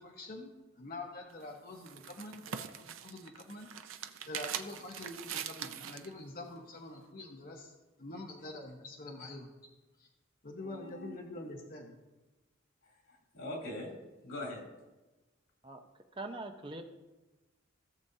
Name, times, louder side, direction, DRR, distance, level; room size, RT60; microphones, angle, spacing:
voice 1, 0.0-3.7 4.3-7.7 8.0-9.5 10.0-10.1 10.4-11.9, left 2 dB, 45° left, 0 dB, 0.9 m, -45 dB
sound 1, 1.3-6.1, right 9 dB, 80° right, 0.5 m, -42 dB
voice 2, 10.6-11.2 11.4-11.5 12.8-13.9 14.2-14.6, left 1 dB, 85° left, -2 dB, 3.0 m, -43 dB
voice 3, 16.2-16.8, right 2 dB, 25° right, 5 dB, 0.6 m, -42 dB
17.0 x 7.0 x 2.7 m, 1.1 s
head